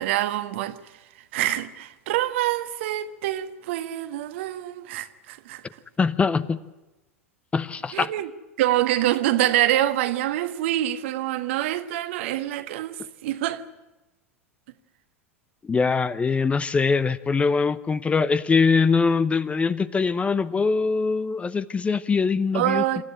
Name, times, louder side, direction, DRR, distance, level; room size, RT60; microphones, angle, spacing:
voice 1, 0.0-5.6 7.9-8.3 8.6-13.6 22.5-23.0, right 13 dB, 60° right, 1.4 m, -26 dB
voice 2, 6.0-6.6 7.5-8.1 15.6-23.0, left 5 dB, 15° left, 0.8 m, -22 dB
27.5 x 13.5 x 10.0 m
figure-of-eight pair, 85°, 7 cm